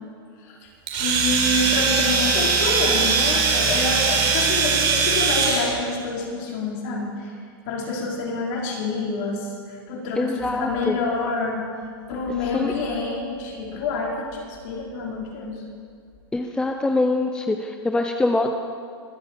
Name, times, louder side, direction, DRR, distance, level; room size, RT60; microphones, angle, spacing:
voice 1, 0.4-0.7 1.0-7.3 7.7-11.6 12.1-15.6, left 3 dB, 50° left, -2 dB, 4.7 m, -27 dB
Domestic sounds home sounds, 0.9-5.7, right 5 dB, 45° right, 5.0 m, -21 dB
voice 2, 10.2-11.0 12.5-12.7 16.3-18.5, left 2 dB, 5° left, 5 dB, 0.7 m, -24 dB
23.5 x 8.0 x 7.5 m, 2.2 s
supercardioid pair, 135°, 13 cm